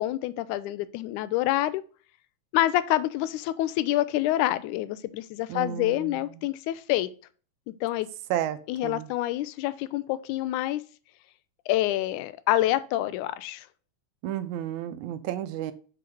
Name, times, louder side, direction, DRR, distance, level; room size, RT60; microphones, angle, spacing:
voice 1, 0.0-1.8 2.5-7.1 7.8-8.1 8.7-10.8 11.7-13.7, left 15 dB, 85° left, 14 dB, 2.0 m, -27 dB
voice 2, 5.5-6.3 8.3-9.1 14.2-15.7, right 11 dB, 85° right, 10 dB, 2.0 m, -32 dB
7.8 x 3.8 x 4.5 m, 0.39 s
omnidirectional pair, 3.4 m